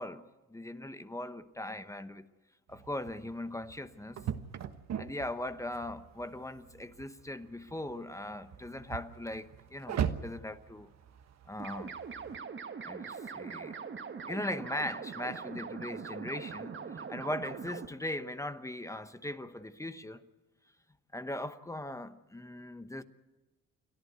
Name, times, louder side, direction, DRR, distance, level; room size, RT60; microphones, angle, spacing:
voice 1, 0.0-2.3 2.7-4.3 5.0-10.9 11.5-11.9 12.8-13.8 14.3-20.2 21.1-23.0, left 1 dB, 10° left, 1.0 m, -39 dB
sound 1, 2.7-12.4, right 8 dB, 60° right, 1.3 m, -41 dB
sound 2, 11.6-17.9, right 6 dB, 40° right, 1.5 m, -42 dB
29.0 x 11.5 x 9.4 m
cardioid pair, 90°, 30 cm